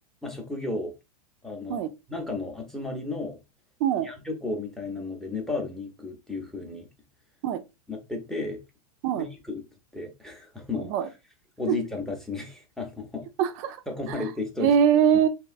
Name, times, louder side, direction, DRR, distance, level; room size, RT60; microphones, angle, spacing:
voice 1, 0.2-0.9 1.4-3.4 4.0-6.9 7.9-8.6 9.2-9.6 9.9-10.9 11.6-13.3 13.9-14.7, left 3 dB, ahead, 0.7 m, -33 dB
voice 2, 10.8-11.1 11.7-11.8 13.4-13.8 14.1-14.2 14.6-15.3, right 9 dB, 45° right, 0.5 m, -22 dB
2.7 x 2.4 x 2.4 m
hypercardioid pair, 105°, 20 cm